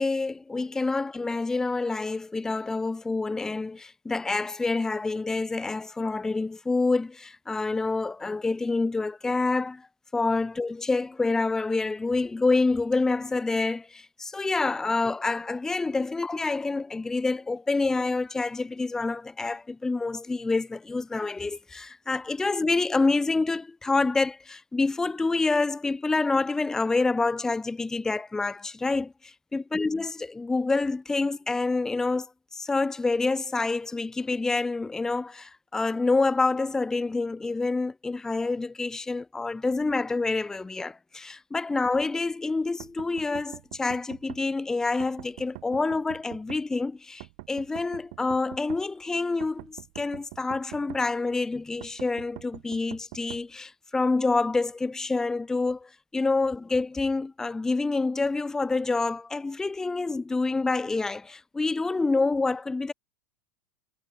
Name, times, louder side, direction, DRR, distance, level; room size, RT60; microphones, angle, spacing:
voice 1, 0.0-9.9 10.1-62.9, left 3 dB, 10° left, 0.5 m, -27 dB
sound 1, 42.8-44.4 45.0-46.6 47.2-48.8 49.4-51.0 51.8-53.4, right 28 dB, 60° right, 1.3 m, -43 dB
hypercardioid pair, 110°, 6 cm